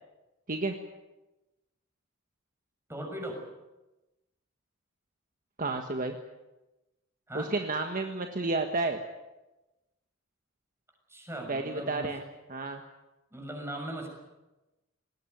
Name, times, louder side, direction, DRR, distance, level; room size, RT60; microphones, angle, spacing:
voice 1, 2.9-3.4 7.3-7.5 11.1-12.1 13.3-14.1, right 1 dB, 10° right, 2 dB, 6.3 m, -38 dB
voice 2, 5.6-6.1 7.3-9.0 11.5-12.2 12.5-12.8, right 3 dB, 40° right, 4 dB, 1.5 m, -31 dB
20.5 x 18.0 x 9.3 m, 1.0 s
head